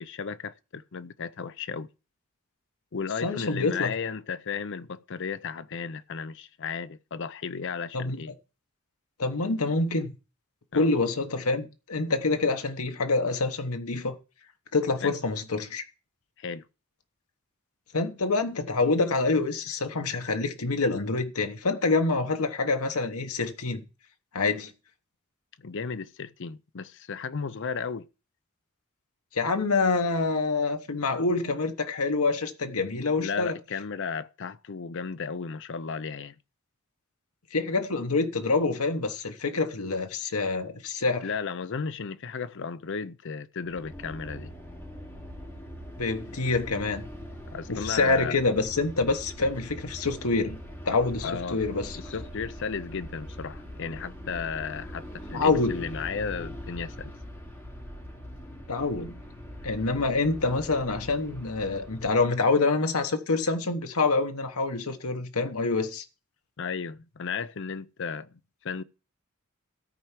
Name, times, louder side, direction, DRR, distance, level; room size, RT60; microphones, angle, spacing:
voice 1, 0.0-1.9 2.9-8.3 10.7-10.9 15.0-15.1 16.4-16.7 25.6-28.1 33.2-36.3 41.2-44.5 47.5-48.4 51.2-51.6 51.9-57.1 66.6-68.3 68.6-68.8, left 5 dB, 60° left, 0.6 m, -34 dB
voice 2, 3.2-3.9 7.9-8.2 9.2-10.2 10.7-14.1 14.7-15.8 17.9-23.8 24.3-24.7 29.3-33.5 37.5-41.3 46.0-47.0 47.7-50.6 50.8-52.0 55.3-55.8 58.7-59.2 59.6-66.0, left 3 dB, 85° left, 1.2 m, -26 dB
sound 1, 43.6-62.4, equal, 10° left, 3.0 m, -42 dB
13.5 x 4.5 x 7.4 m
head